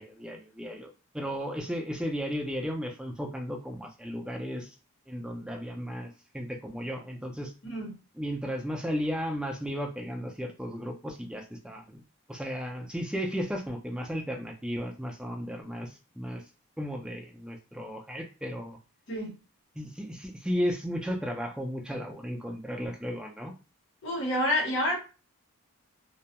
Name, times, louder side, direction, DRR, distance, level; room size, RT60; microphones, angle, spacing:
voice 1, 0.0-4.7 5.1-7.5 8.2-12.0 12.3-16.4 16.8-18.8 19.8-23.5, equal, 5° right, 2 dB, 0.3 m, -34 dB
voice 2, 24.0-25.0, left 1 dB, 55° left, -2 dB, 0.9 m, -28 dB
2.2 x 2.1 x 2.7 m, 0.32 s
head